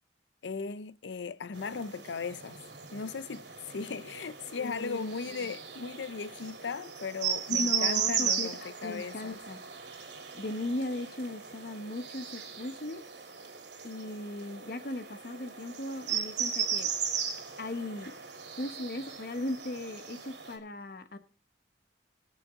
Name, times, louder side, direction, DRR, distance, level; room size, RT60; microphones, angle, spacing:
voice 1, 0.4-2.6 2.9-9.4, left 5 dB, 90° left, 0.5 m, -37 dB
sound 1, 1.5-20.6, right 7 dB, 75° right, 2.7 m, -37 dB
voice 2, 4.6-5.5 7.5-9.6 10.3-13.1 13.8-16.9 17.6-18.1 18.6-21.2, left 1 dB, 55° left, 1.0 m, -37 dB
21.5 x 7.5 x 3.6 m
head